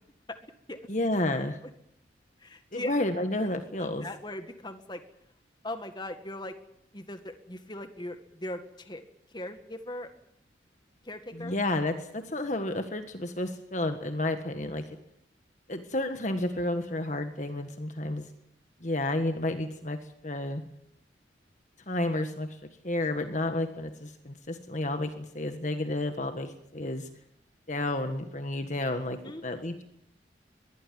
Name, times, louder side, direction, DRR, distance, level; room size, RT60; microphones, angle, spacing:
voice 1, 0.9-1.6 2.7-4.1 11.3-14.8 15.7-18.3 18.8-20.6 21.9-22.6 22.8-27.1 27.7-29.8, left 1 dB, 40° left, 7 dB, 1.6 m, -31 dB
voice 2, 2.4-2.9 3.8-5.0 5.6-6.5 6.9-9.0 9.3-10.1 11.0-11.6 29.2-29.8, left 1 dB, 25° left, 7 dB, 1.9 m, -39 dB
22.5 x 15.5 x 9.5 m, 0.75 s
head